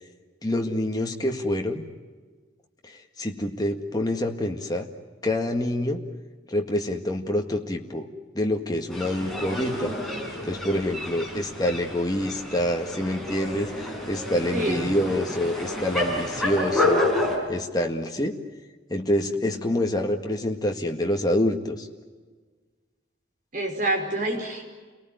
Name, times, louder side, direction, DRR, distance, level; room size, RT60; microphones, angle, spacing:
voice 1, 0.4-1.8 2.8-4.9 5.2-6.0 6.5-8.1 8.4-9.9 10.4-13.7 14.1-17.1 17.5-18.4 18.9-21.9, left 1 dB, 20° left, 3 dB, 1.8 m, -26 dB
sound 1, 8.9-17.4, left 1 dB, ahead, 6.1 m, -29 dB
voice 2, 14.5-14.9 23.5-24.6, right 1 dB, 45° right, 1 dB, 5.1 m, -27 dB
29.0 x 19.0 x 9.3 m, 1.4 s
head